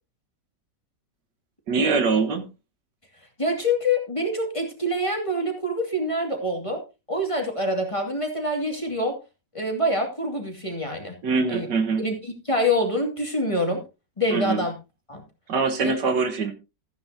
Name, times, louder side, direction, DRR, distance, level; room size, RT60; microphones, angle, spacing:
voice 1, 1.7-2.4 11.2-12.0 14.3-14.7 15.5-16.5, right 4 dB, 75° right, 1.9 m, -23 dB
voice 2, 3.4-6.8 7.1-9.2 9.5-11.2 11.5-11.7 12.0-13.8 14.2-14.7 15.1-15.2 15.8-15.9, left 1 dB, 20° left, 2.3 m, -26 dB
14.5 x 9.4 x 2.8 m
omnidirectional pair, 1.9 m